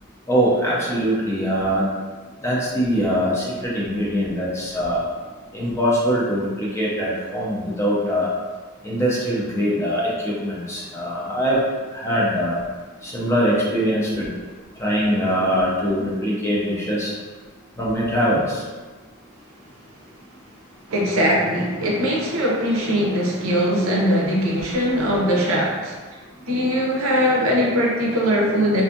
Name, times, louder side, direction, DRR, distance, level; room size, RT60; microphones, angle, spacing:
voice 1, 0.3-2.0 2.4-5.1 5.5-8.3 8.8-12.6 13.0-14.4 14.7-17.1 17.8-18.7 26.2-26.5, equal, 15° left, -6 dB, 0.4 m, -22 dB
voice 2, 20.9-26.0 26.4-28.8, equal, 70° right, -2 dB, 0.6 m, -21 dB
2.5 x 2.4 x 2.5 m, 1.4 s
head